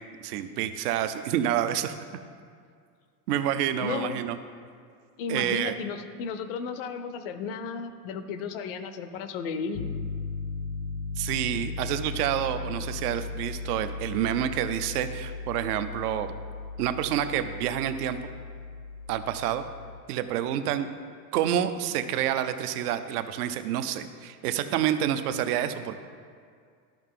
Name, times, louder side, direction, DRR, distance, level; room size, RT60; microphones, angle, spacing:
voice 1, 0.2-2.0 3.3-4.4 5.3-5.7 11.2-16.3 16.8-18.2 19.1-19.6 20.1-20.9 21.3-26.0, right 10 dB, 70° right, 10 dB, 0.7 m, -28 dB
voice 2, 3.8-4.2 5.2-9.9, left 5 dB, 40° left, 10 dB, 0.4 m, -34 dB
Piano, 9.7-20.0, left 4 dB, 75° left, 0.8 m, -37 dB
12.0 x 5.6 x 3.7 m, 2.2 s
supercardioid pair, 165°, 48 cm